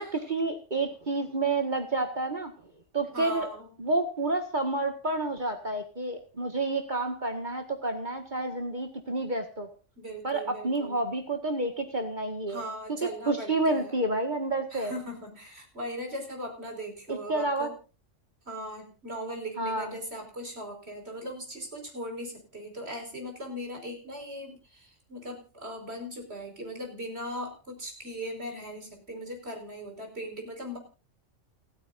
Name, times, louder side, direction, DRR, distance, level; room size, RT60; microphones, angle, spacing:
voice 1, 0.0-2.5 2.9-3.5 3.8-9.7 10.2-12.6 13.3-14.9 17.1-17.7 19.6-19.9, right 2 dB, 40° right, 5 dB, 1.9 m, -29 dB
voice 2, 3.1-3.7 10.0-11.1 12.5-13.9 14.7-17.7 18.5-30.8, equal, 55° right, 3 dB, 5.4 m, -39 dB
29.0 x 10.5 x 2.6 m, 0.33 s
omnidirectional pair, 1.3 m